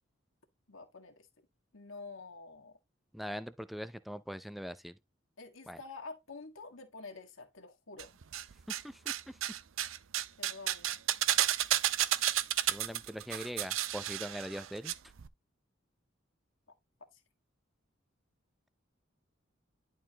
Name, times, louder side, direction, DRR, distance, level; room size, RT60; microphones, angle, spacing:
voice 1, 0.7-1.3 1.7-2.8 5.4-8.2 10.4-11.0 17.1-17.2, left 3 dB, 85° left, 1.7 m, -48 dB
voice 2, 3.1-4.9 5.7-5.8 8.7-9.3 12.7-14.9, equal, ahead, 0.5 m, -42 dB
sound 1, 8.0-8.8 9.1-14.9 15.2-15.3, right 13 dB, 85° right, 0.5 m, -32 dB
11.0 x 4.5 x 2.9 m
head